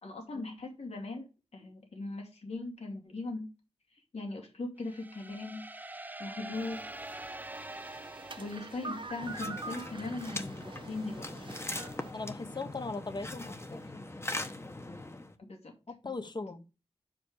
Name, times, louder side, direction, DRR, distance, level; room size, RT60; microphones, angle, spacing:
voice 1, 0.0-3.5 4.1-5.6 6.2-6.9 8.4-11.5 15.4-15.7, left 2 dB, 85° left, 2 dB, 2.5 m, -39 dB
sound 1, 4.8-9.5, right 2 dB, 15° right, 0.5 m, -45 dB
sound 2, 6.5-12.1, right 3 dB, 50° right, 1.1 m, -45 dB
sound 3, 9.2-15.3, left 2 dB, 25° left, 1.0 m, -41 dB
voice 2, 12.1-13.8 16.0-16.6, left 3 dB, 45° left, 9 dB, 1.0 m, -38 dB
5.6 x 5.1 x 6.4 m, 0.29 s
wide cardioid pair, 80°, 11 cm